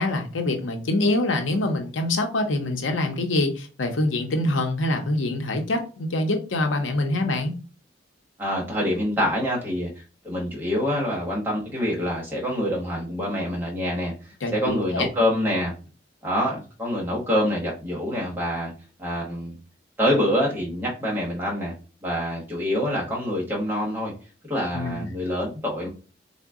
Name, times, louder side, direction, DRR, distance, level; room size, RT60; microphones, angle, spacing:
voice 1, 0.0-7.5 14.4-15.1 24.7-25.1, left 2 dB, 85° left, 5 dB, 0.7 m, -25 dB
voice 2, 8.4-14.1 14.5-15.7 16.2-18.7 19.0-19.6 20.0-21.7 22.0-24.1 24.5-25.9, equal, 10° right, -3 dB, 1.0 m, -26 dB
3.8 x 2.0 x 3.5 m, 0.36 s
head